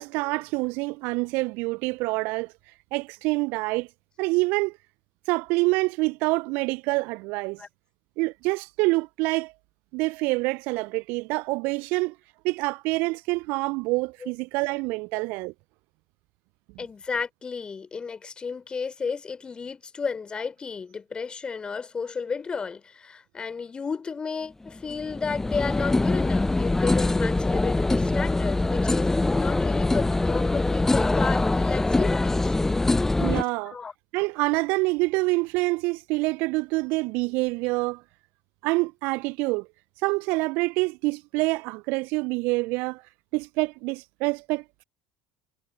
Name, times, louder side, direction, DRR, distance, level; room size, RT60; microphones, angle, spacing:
voice 1, 0.0-2.5 2.9-3.9 4.2-4.8 5.3-7.6 8.2-9.5 9.9-12.2 12.4-15.5 33.2-33.8 34.1-38.0 38.6-39.7 40.0-43.0 43.3-44.8, right 25 dB, 60° right, 0.6 m, -26 dB
voice 2, 16.8-32.5 33.6-33.9, left 5 dB, 25° left, 3.8 m, -33 dB
sound 1, 24.7-33.4, left 2 dB, 10° left, 0.7 m, -23 dB
figure-of-eight pair, 65°, 4 cm